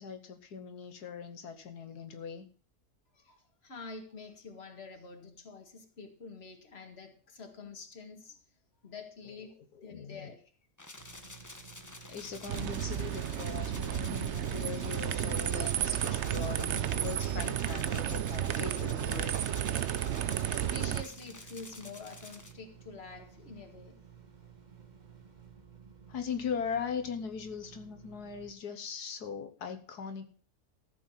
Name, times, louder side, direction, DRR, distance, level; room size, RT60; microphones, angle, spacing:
voice 1, 0.0-2.5 9.8-10.3 12.1-19.4 26.1-30.3, left 6 dB, 85° left, 1.7 m, -40 dB
voice 2, 3.1-8.4 8.8-10.5 20.3-24.0, left 3 dB, 40° left, 2.2 m, -47 dB
sound 1, 10.8-22.5, left 2 dB, 15° left, 0.9 m, -50 dB
sound 2, 11.0-28.5, right 7 dB, 30° right, 1.3 m, -55 dB
sound 3, 12.5-21.0, right 10 dB, 60° right, 0.8 m, -32 dB
14.5 x 7.0 x 5.7 m
omnidirectional pair, 1.7 m